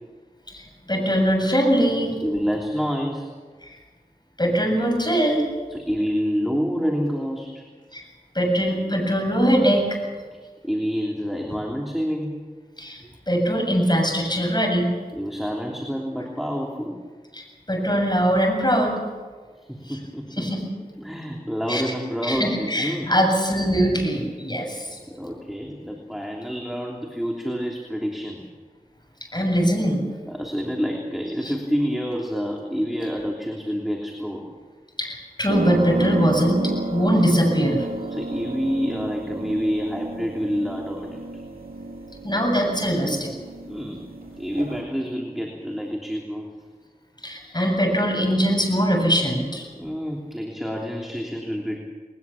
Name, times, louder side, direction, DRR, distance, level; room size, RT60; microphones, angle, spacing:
voice 1, 0.5-2.2 3.6-3.7 4.4-5.5 7.9-8.1 8.3-10.0 12.8-14.9 17.3-18.9 19.9-20.0 20.4-20.6 21.7-21.9 22.2-25.0 29.3-30.0 31.4-31.5 35.0-37.9 42.2-43.3 47.2-49.7, equal, 30° left, 2 dB, 7.4 m, -22 dB
voice 2, 2.2-3.3 5.7-7.7 10.6-12.4 15.1-17.0 19.7-20.5 21.0-23.1 25.1-28.4 30.3-34.5 38.1-41.2 43.7-44.1 44.4-46.5 49.7-51.8, equal, ahead, 0 dB, 3.2 m, -28 dB
sound 1, 35.5-44.8, right 2 dB, 75° right, 5.2 m, -32 dB
21.0 x 20.5 x 7.2 m, 1.4 s
wide cardioid pair, 45°, 16 cm